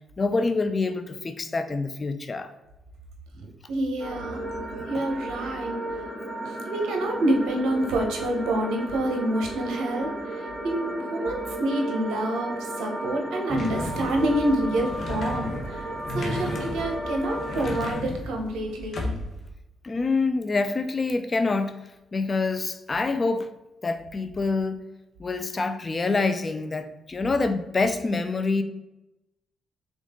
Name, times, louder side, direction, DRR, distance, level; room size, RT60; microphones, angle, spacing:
voice 1, 0.2-2.5 4.9-5.0 19.8-21.7 22.1-23.5 23.8-24.8 25.2-28.6, left 3 dB, 30° left, 9 dB, 0.4 m, -26 dB
voice 2, 3.4-4.4 4.9-5.8 6.4-15.9 16.1-19.1, right 1 dB, 85° right, 2 dB, 0.9 m, -27 dB
sound 1, 4.0-17.9, right 1 dB, 20° right, 1.3 m, -34 dB
sound 2, 13.5-19.5, left 2 dB, 50° left, 0.9 m, -34 dB
3.8 x 3.6 x 3.7 m, 0.94 s
cardioid pair, 90°, 0 cm